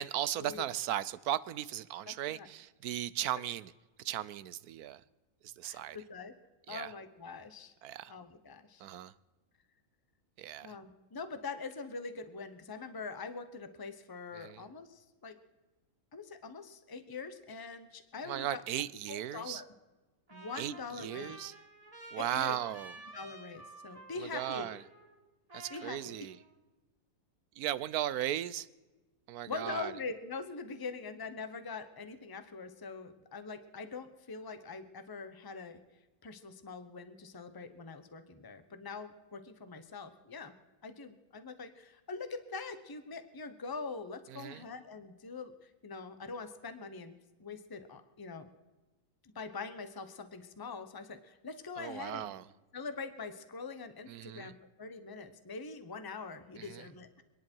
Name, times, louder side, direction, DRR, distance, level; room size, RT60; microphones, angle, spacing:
voice 1, 0.0-3.7 4.0-5.0 5.6-6.0 6.7-6.9 7.8-8.1 8.8-9.1 10.4-10.7 14.4-14.6 18.2-19.6 20.6-20.7 21.0-21.5 22.1-22.9 24.3-24.8 25.5-26.3 27.6-28.7 29.3-29.9 44.3-44.6 51.8-52.4 54.1-54.5 56.6-56.8, right 12 dB, 85° right, 1.2 m, -36 dB
voice 2, 2.1-2.5 5.6-6.3 6.7-7.7 8.1-8.9 10.6-15.3 16.1-18.8 19.1-19.7 20.3-21.4 22.2-22.6 23.1-24.7 25.7-26.3 29.5-35.8 36.2-40.5 40.8-48.5 49.3-52.3 52.7-57.2, left 4 dB, 15° left, 0.9 m, -43 dB
Trumpet, 20.3-25.2 25.5-26.5, right 2 dB, 25° right, 2.4 m, -51 dB
27.0 x 10.5 x 4.5 m
omnidirectional pair, 1.6 m